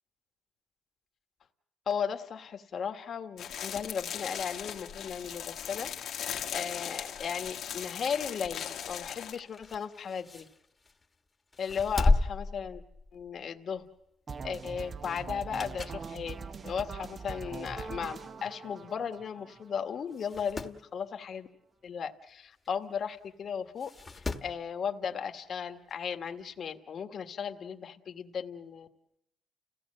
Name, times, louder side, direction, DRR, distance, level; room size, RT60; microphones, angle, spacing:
voice 1, 1.9-10.5 11.6-12.8 13.1-13.9 14.4-16.3 16.6-21.5 21.8-28.9, left 7 dB, 55° left, 6 dB, 1.5 m, -36 dB
sound 1, 3.4-9.3, left 9 dB, 70° left, 1.6 m, -38 dB
sound 2, 9.2-11.1 11.5-13.4 13.8-14.0 15.3-16.1 16.6-16.7 17.5-17.6 17.9-18.0 18.2-18.3 19.1-19.3 19.6-19.7 20.1-20.8 22.6-22.7 23.8-24.6 25.9-26.0, left 3 dB, 25° left, 1.4 m, -33 dB
sound 3, 14.3-20.2, right 5 dB, 40° right, 0.9 m, -42 dB
30.0 x 17.0 x 7.7 m, 0.84 s
cardioid pair, 90°, 0 cm